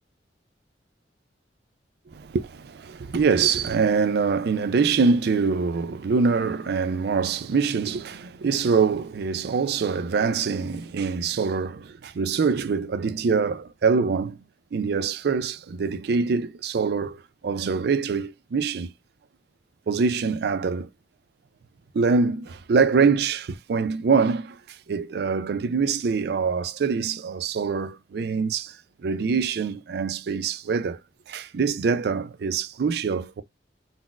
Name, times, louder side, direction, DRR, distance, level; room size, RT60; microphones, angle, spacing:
voice 1, 2.1-14.4 14.7-18.9 19.9-20.9 21.9-31.0 31.3-33.4, right 5 dB, 60° right, 0.4 m, -24 dB
3.9 x 2.0 x 2.3 m
head